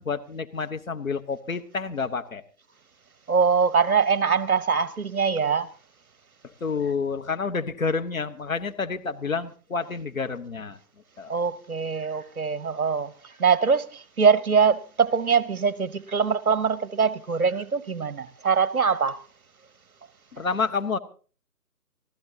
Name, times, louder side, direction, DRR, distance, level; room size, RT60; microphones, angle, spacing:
voice 1, 0.0-2.4 6.6-10.8 11.2-11.4 20.3-21.0, left 5 dB, 55° left, 1.2 m, -29 dB
voice 2, 3.3-5.7 11.3-13.1 13.4-19.2, right 6 dB, 60° right, 1.0 m, -23 dB
24.5 x 14.5 x 2.8 m
figure-of-eight pair, 150°, 50 cm